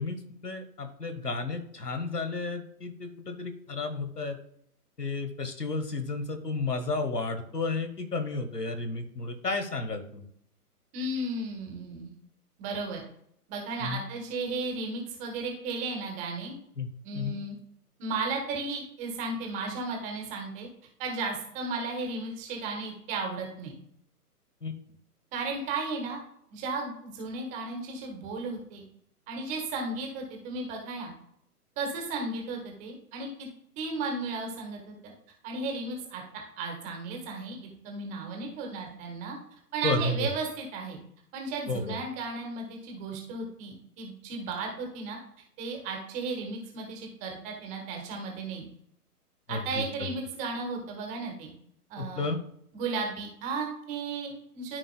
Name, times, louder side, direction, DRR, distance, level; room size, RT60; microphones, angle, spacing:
voice 1, 0.0-4.4 5.0-10.3 13.8-14.0 16.8-16.9 17.1-17.4 24.6-24.7 39.8-40.3 41.7-42.0 49.5-50.1 52.0-52.4, left 3 dB, 85° left, 8 dB, 1.4 m, -32 dB
voice 2, 10.9-12.1 12.6-13.0 13.5-16.6 17.0-17.5 18.0-20.7 21.0-23.7 25.3-26.2 26.5-28.8 29.3-31.1 31.8-33.5 33.8-34.9 35.4-37.6 37.8-39.4 39.7-41.0 41.3-45.2 45.6-48.6 49.5-51.5 51.9-52.3 52.7-54.8, right 3 dB, 15° right, 1 dB, 1.3 m, -34 dB
13.5 x 4.6 x 2.2 m, 0.69 s
figure-of-eight pair, 125°, 47 cm